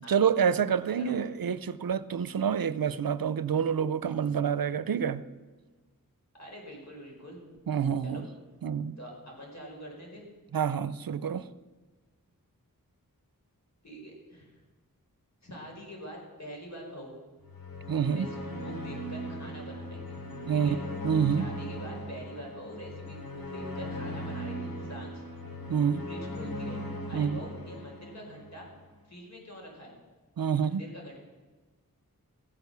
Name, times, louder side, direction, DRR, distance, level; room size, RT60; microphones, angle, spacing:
voice 1, 0.1-5.2 7.7-8.3 8.6-9.0 10.5-11.5 17.9-18.3 20.5-20.7 21.0-21.4 25.7-26.0 27.1-27.4 30.4-30.8, right 7 dB, 75° right, 15 dB, 0.6 m, -27 dB
voice 2, 6.4-7.4 8.0-8.2 9.0-10.2 13.8-14.6 15.4-17.1 18.1-20.2 20.5-20.8 21.3-25.2 26.1-26.8 27.1-28.7 29.1-30.0 30.6-31.3, equal, 50° left, -1 dB, 5.0 m, -45 dB
sound 1, 17.4-28.8, equal, 75° left, 3.2 m, -38 dB
15.0 x 9.5 x 6.8 m, 1.3 s
wide cardioid pair, 65°, 35 cm